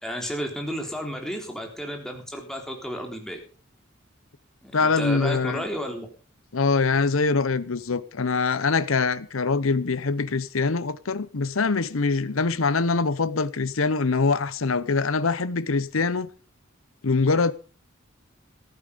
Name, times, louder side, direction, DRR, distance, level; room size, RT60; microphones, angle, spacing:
voice 1, 0.0-3.4 4.6-6.1, equal, 5° left, 3.6 m, -32 dB
voice 2, 4.7-5.6 6.5-16.3 17.0-17.5, left 4 dB, 80° left, 0.8 m, -23 dB
15.0 x 12.0 x 5.2 m
head